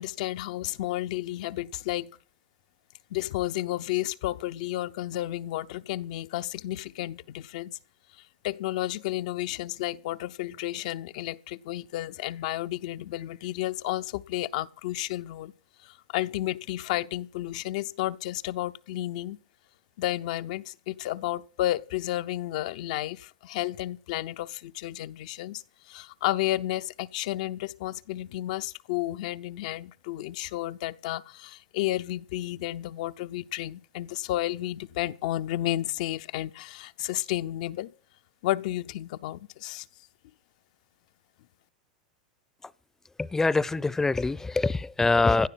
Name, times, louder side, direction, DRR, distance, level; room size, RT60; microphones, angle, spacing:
voice 1, 0.0-2.2 3.1-7.8 8.1-15.5 15.8-19.4 20.0-37.9 38.4-39.9, left 15 dB, 65° left, 0.8 m, -32 dB
voice 2, 43.2-45.5, left 3 dB, 10° left, 0.7 m, -24 dB
17.0 x 12.5 x 6.1 m
hypercardioid pair, 95°, 4 cm